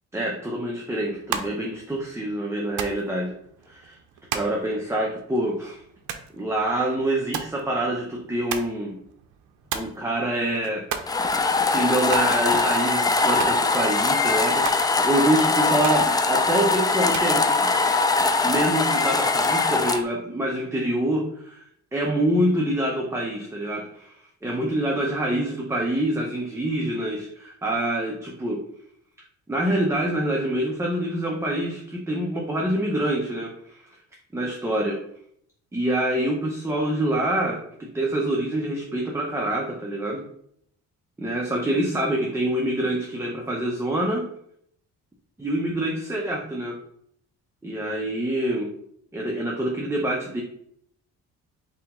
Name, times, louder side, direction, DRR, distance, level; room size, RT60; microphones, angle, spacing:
voice 1, 0.1-3.3 3.7-4.0 4.3-5.8 6.3-9.0 9.7-10.8 11.6-14.6 15.0-17.5 18.4-28.6 29.5-33.8 34.3-35.0 35.7-40.2 41.2-44.3 45.4-46.8 47.6-48.7 49.1-50.4, right 1 dB, 10° right, -1 dB, 0.7 m, -26 dB
sound 1, 1.1-17.4, right 8 dB, 85° right, 0.6 m, -38 dB
sound 2, 11.1-20.0, left 3 dB, 15° left, 0.3 m, -22 dB
4.1 x 3.0 x 3.6 m, 0.66 s
cardioid pair, 90°, 30 cm